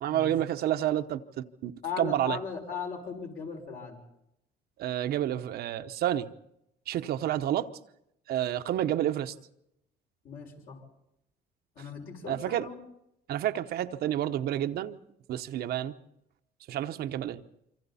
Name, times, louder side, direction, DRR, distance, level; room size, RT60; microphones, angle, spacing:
voice 1, 0.0-1.7 2.0-2.4 4.8-6.3 6.9-7.7 8.3-9.3 12.3-12.7 13.3-15.0 15.3-15.9 16.7-17.4, right 12 dB, 70° right, 0.9 m, -29 dB
voice 2, 1.8-4.0 10.2-10.8 11.8-12.8, left 6 dB, 60° left, 6.0 m, -38 dB
27.0 x 25.0 x 4.2 m
cardioid pair, 110°, 17 cm